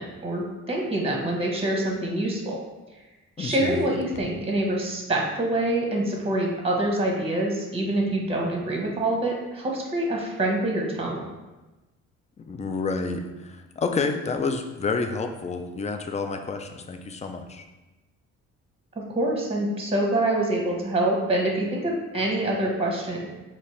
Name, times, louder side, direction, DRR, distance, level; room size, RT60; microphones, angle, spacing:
voice 1, 0.0-2.6 3.4-11.2 19.1-23.2, right 1 dB, 20° right, -1 dB, 1.0 m, -26 dB
voice 2, 3.4-3.8 12.5-17.6, left 4 dB, 25° left, 6 dB, 0.4 m, -29 dB
4.3 x 2.8 x 3.1 m, 1.1 s
cardioid pair, 90°, 30 cm